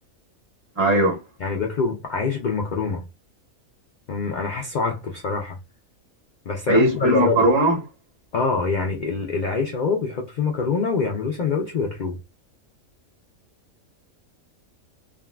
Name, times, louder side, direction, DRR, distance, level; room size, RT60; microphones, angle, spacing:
voice 1, 0.7-1.2 6.7-7.8, right 1 dB, 50° right, 1.4 m, -18 dB
voice 2, 1.4-3.0 4.1-5.6 6.5-7.5 8.3-12.2, left 4 dB, 75° left, 0.4 m, -25 dB
3.6 x 2.3 x 2.2 m
omnidirectional pair, 1.5 m